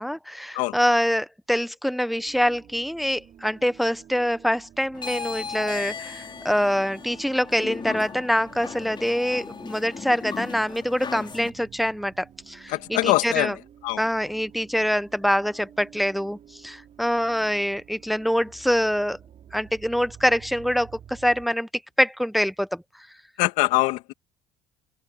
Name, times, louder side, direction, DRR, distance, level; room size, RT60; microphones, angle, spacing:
voice 1, 0.0-13.6 14.0-19.2 19.5-21.7 22.0-22.8, equal, ahead, 1.0 m, -25 dB
sound 1, 2.2-21.5, right 9 dB, 55° right, 6.8 m, -50 dB
sound 2, 4.9-11.5, left 6 dB, 35° left, 4.8 m, -36 dB
voice 2, 12.7-13.5 13.8-14.0 23.4-24.1, left 19 dB, 80° left, 2.3 m, -23 dB
supercardioid pair, 75°, 13 cm